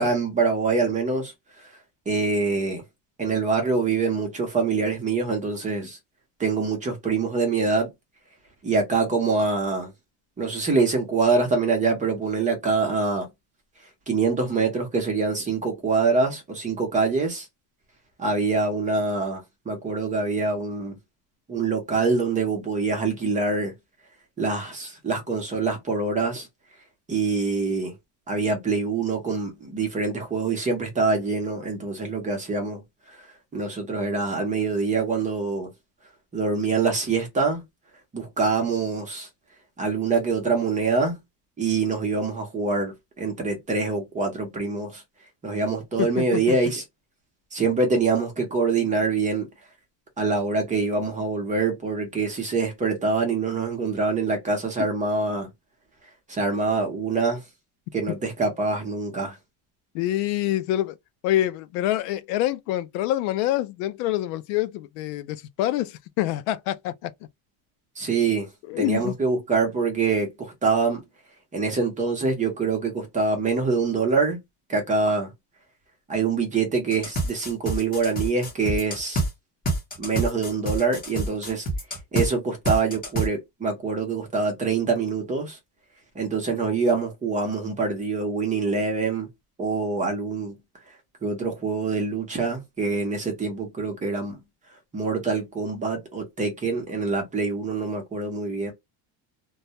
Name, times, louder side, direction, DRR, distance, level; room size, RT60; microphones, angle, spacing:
voice 1, 0.0-1.3 1.6-1.7 2.1-2.8 3.2-6.0 6.4-7.9 8.6-9.9 10.4-13.3 14.1-17.5 18.2-21.0 21.5-23.7 24.4-26.5 27.1-27.9 28.3-32.8 33.1-33.2 33.5-35.7 36.3-37.6 38.1-39.3 39.8-41.2 41.6-45.0 45.4-46.8 47.5-49.5 50.2-55.5 56.3-57.4 57.9-59.4 68.0-68.5 68.8-71.0 71.5-74.4 74.7-75.3 76.1-79.2 80.0-81.7 82.1-85.6 86.1-89.3 89.6-90.5 91.2-94.4 94.9-98.7, right 4 dB, 15° right, 0.6 m, -25 dB
voice 2, 46.0-46.6 59.9-61.0 61.2-67.1 68.7-69.1, left 14 dB, 90° left, 0.5 m, -26 dB
sound 1, 76.9-79.3 79.7-82.3 82.7-83.3, right 1 dB, 20° left, 0.8 m, -27 dB
2.2 x 2.1 x 2.7 m
cardioid pair, 155°, 48 cm